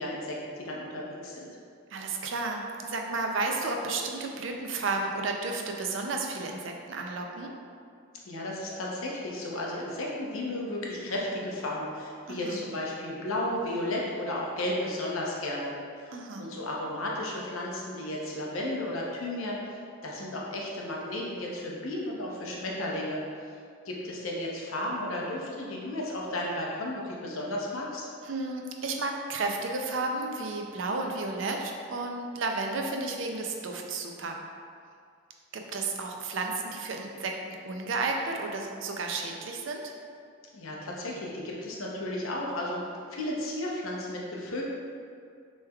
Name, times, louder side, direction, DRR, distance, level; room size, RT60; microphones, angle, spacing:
voice 1, 0.0-1.5 8.2-15.7 16.4-19.7 20.0-23.2 23.8-28.1 40.5-42.8 43.1-44.7, left 1 dB, 80° left, -3 dB, 0.8 m, -33 dB
voice 2, 1.9-7.5 12.3-12.6 16.1-16.5 28.2-34.4 35.5-39.8, right 3 dB, 65° right, 2 dB, 0.5 m, -32 dB
6.4 x 3.2 x 2.3 m, 2.3 s
head